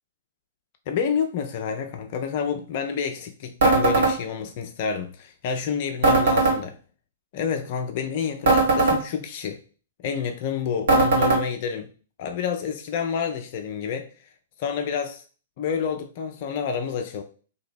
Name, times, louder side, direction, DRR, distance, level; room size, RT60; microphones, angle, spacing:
voice 1, 0.9-6.8 7.3-9.6 10.0-11.9 12.2-14.1 14.6-15.2 15.6-17.2, left 6 dB, 45° left, 0.5 m, -29 dB
sound 1, 3.6-4.1 6.0-6.6 8.4-9.0 10.9-11.4, right 3 dB, 60° right, 1.5 m, -18 dB
2.9 x 2.9 x 4.3 m
figure-of-eight pair, 110°, 0 cm